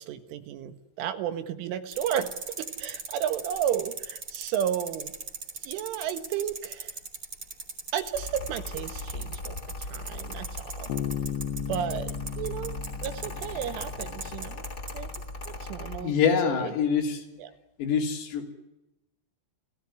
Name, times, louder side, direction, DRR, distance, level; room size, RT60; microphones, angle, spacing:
voice 1, 0.0-5.1 5.6-7.0 7.9-10.9 11.7-12.7 13.0-14.6 14.9-15.1 15.5-16.1 16.5-16.7 17.4-17.5, right 9 dB, 75° right, 10 dB, 3.9 m, -33 dB
sound 1, 1.9-15.2 15.4-15.5, right 4 dB, 30° right, 3.6 m, -37 dB
Mechanical fan, 8.1-16.0, left 2 dB, 20° left, 3.1 m, -38 dB
Bass guitar, 10.9-14.4, left 10 dB, 70° left, 3.2 m, -35 dB
voice 2, 16.0-17.2 17.8-18.5, left 7 dB, 85° left, 3 dB, 6.0 m, -25 dB
29.5 x 17.0 x 9.8 m, 0.94 s
omnidirectional pair, 5.9 m